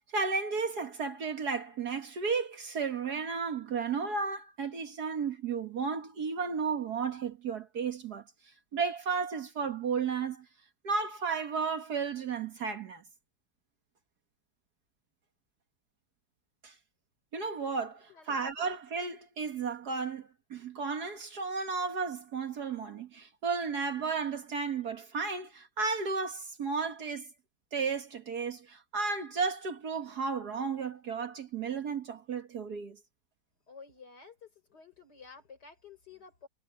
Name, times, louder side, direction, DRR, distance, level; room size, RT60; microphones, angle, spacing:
voice 1, 0.1-8.2 8.7-10.5 10.8-13.0 16.6-16.7 17.3-27.3 27.7-33.0, right 5 dB, 55° right, 1.9 m, -33 dB
voice 2, 33.7-36.5, left 5 dB, 55° left, 5.4 m, -52 dB
omnidirectional pair, 2.2 m